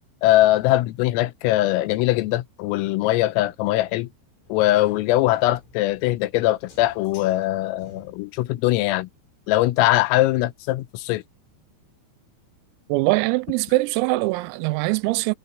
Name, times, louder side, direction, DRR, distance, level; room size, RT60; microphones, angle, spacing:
voice 1, 0.2-4.1 4.5-9.1 9.5-11.2, left 16 dB, 85° left, 3.5 m, -21 dB
sound 1, 4.5-8.5, left 4 dB, 70° left, 9.4 m, -50 dB
voice 2, 12.9-15.4, right 22 dB, 90° right, 3.3 m, -22 dB
omnidirectional pair, 6.0 m